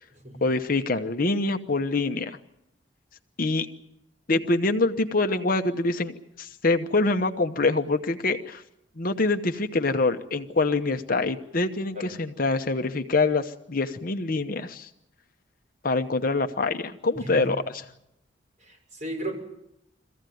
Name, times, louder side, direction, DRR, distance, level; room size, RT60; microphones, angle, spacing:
voice 1, 0.4-2.4 3.4-3.7 4.3-8.6 9.0-14.9 15.8-17.8, left 3 dB, 50° left, 8 dB, 0.9 m, -25 dB
voice 2, 17.1-17.5 18.6-19.4, right 1 dB, 40° right, 0 dB, 6.1 m, -35 dB
23.0 x 15.5 x 9.3 m, 0.83 s
head